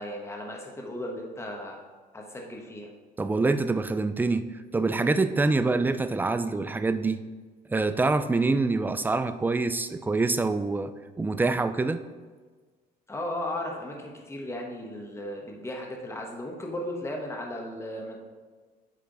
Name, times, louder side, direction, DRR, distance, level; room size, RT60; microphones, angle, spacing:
voice 1, 0.0-1.8 2.1-2.9 13.1-18.2, left 1 dB, 15° left, 0 dB, 1.1 m, -36 dB
voice 2, 3.2-7.2 7.7-12.0, right 3 dB, 10° right, 11 dB, 0.3 m, -26 dB
8.6 x 3.3 x 3.9 m, 1.4 s
cardioid pair, 110°, 17 cm